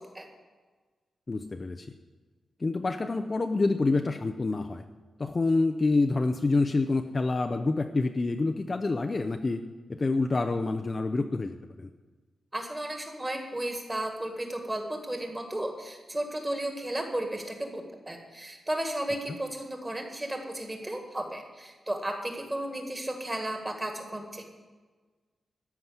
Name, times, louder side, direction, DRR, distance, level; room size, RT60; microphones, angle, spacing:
voice 1, 1.3-1.9 2.6-4.8 5.2-9.6 9.9-11.9, left 3 dB, 25° left, 6 dB, 0.5 m, -27 dB
voice 2, 12.5-24.4, right 1 dB, 15° right, 3 dB, 1.8 m, -34 dB
13.5 x 5.8 x 9.5 m, 1.4 s
wide cardioid pair, 180°, 0 cm